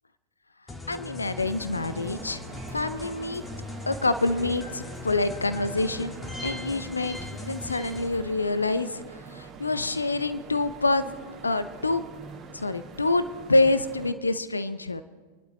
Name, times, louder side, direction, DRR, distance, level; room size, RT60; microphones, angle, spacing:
sound 1, 0.7-8.1, left 2 dB, 15° left, 1.7 m, -39 dB
voice 1, 0.9-2.4 2.7-3.4 3.9-6.1 6.4-9.0 9.3-11.0 11.4-12.1 12.5-15.0, left 2 dB, 80° left, 13 dB, 0.6 m, -26 dB
sound 2, 1.4-14.1, right 5 dB, 25° right, 2.1 m, -45 dB
27.5 x 11.5 x 3.0 m, 1.5 s
figure-of-eight pair, 90°, 0 cm